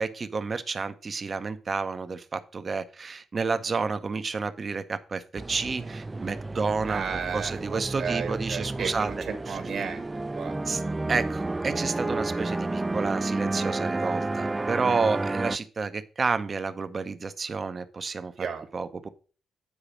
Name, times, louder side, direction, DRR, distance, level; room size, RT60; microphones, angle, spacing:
voice 1, 0.0-7.1 7.3-9.1 9.5-9.6 10.7-10.8 11.1-18.5 18.7-19.1, right 4 dB, 40° right, 11 dB, 0.8 m, -30 dB
sound 1, 5.4-15.6, right 2 dB, 25° right, 0.3 m, -31 dB
voice 2, 6.9-10.5 18.4-18.6, right 6 dB, 60° right, 6 dB, 1.7 m, -34 dB
8.6 x 4.9 x 5.0 m, 0.38 s
hypercardioid pair, 40°, 0 cm